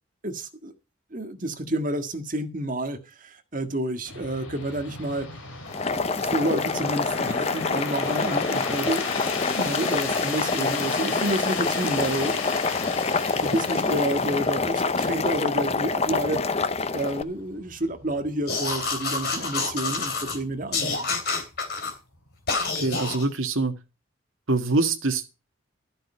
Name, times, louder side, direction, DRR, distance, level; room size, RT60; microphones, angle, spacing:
voice 1, 0.2-0.7 1.1-5.6 5.9-9.1 9.5-21.1, right 1 dB, 40° right, 1.7 m, -30 dB
sound 1, 4.0-22.7, left 5 dB, 80° left, 2.9 m, -37 dB
Boiling, 5.7-17.2, left 4 dB, 30° left, 0.6 m, -26 dB
sound 2, 18.5-20.4 20.7-21.9 22.5-23.3, left 4 dB, 50° left, 3.2 m, -28 dB
voice 2, 22.7-23.8 24.5-25.3, right 3 dB, 80° right, 1.7 m, -24 dB
13.0 x 7.8 x 5.5 m
head